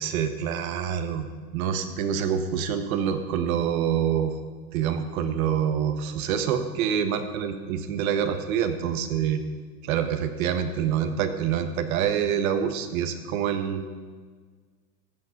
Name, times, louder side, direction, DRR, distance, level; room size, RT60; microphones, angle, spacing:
voice 1, 0.0-4.3 4.7-9.4 9.8-13.9, right 8 dB, 60° right, 8 dB, 1.4 m, -26 dB
14.5 x 8.7 x 5.3 m, 1.5 s
supercardioid pair, 130°, 46 cm